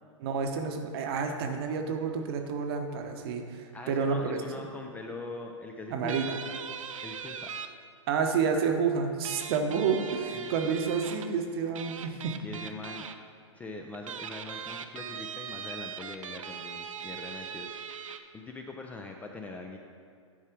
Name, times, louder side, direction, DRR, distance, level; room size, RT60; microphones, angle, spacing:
voice 1, 0.2-4.6 5.9-6.3 8.1-12.4, right 5 dB, 50° right, 5 dB, 0.9 m, -29 dB
voice 2, 3.7-6.4 7.0-7.5 10.3-10.7 12.4-13.0 13.5-17.7 18.0-19.8, left 2 dB, 10° left, 2 dB, 0.3 m, -42 dB
sound 1, 6.1-7.7 9.2-11.3 11.7-13.1 13.9-18.2, right 7 dB, 80° right, 0.5 m, -40 dB
10.0 x 4.7 x 4.5 m, 2.2 s
hypercardioid pair, 130°, 17 cm